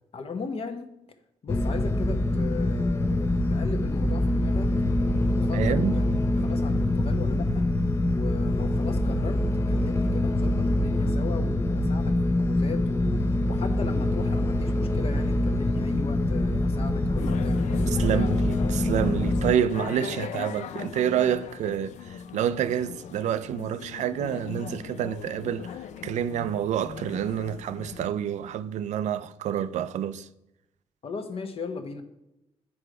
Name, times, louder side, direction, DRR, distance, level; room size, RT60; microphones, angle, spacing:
voice 1, 0.1-0.9 1.4-4.7 5.3-6.0 6.4-7.7 8.1-9.4 9.7-18.3 31.0-32.0, left 4 dB, 55° left, 1.0 m, -37 dB
sound 1, 1.5-19.5, left 1 dB, 20° left, 0.6 m, -25 dB
voice 2, 5.5-6.0 18.0-22.0 22.3-25.7 26.0-30.3, right 9 dB, 85° right, 0.4 m, -28 dB
sound 2, 17.2-28.1, left 8 dB, 85° left, 0.4 m, -39 dB
7.7 x 4.8 x 4.8 m
cardioid pair, 90°, 12 cm